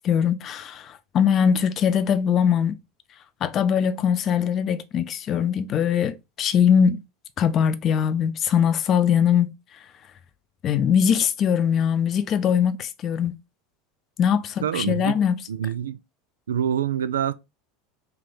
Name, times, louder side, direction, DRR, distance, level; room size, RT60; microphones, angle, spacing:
voice 1, 0.0-2.8 3.4-7.0 7.4-9.5 10.6-13.4 14.2-15.4, left 8 dB, 40° left, 0.5 m, -21 dB
voice 2, 14.6-15.2 15.5-16.0 16.5-17.3, right 9 dB, 75° right, 0.3 m, -26 dB
3.4 x 3.2 x 3.9 m
figure-of-eight pair, 75°, 0 cm